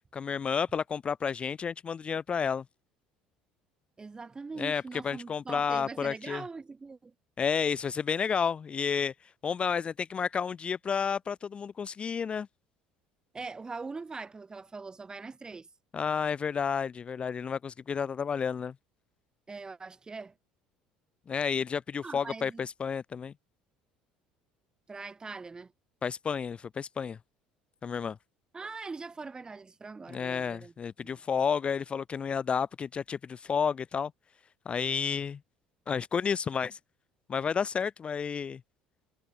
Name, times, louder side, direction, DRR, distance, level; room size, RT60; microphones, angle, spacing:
voice 1, 0.1-2.6 4.6-6.4 7.4-9.1 9.4-12.5 15.9-18.7 21.3-23.3 26.0-27.2 27.8-28.2 30.1-34.1 34.7-35.4 35.9-36.8 37.3-38.6, left 6 dB, 35° left, 0.4 m, -31 dB
voice 2, 4.0-7.1 13.3-15.7 19.5-20.3 22.0-22.7 24.9-25.7 28.5-30.7 31.0-31.2, right 4 dB, 25° right, 3.6 m, -42 dB
hypercardioid pair, 70°, 3 cm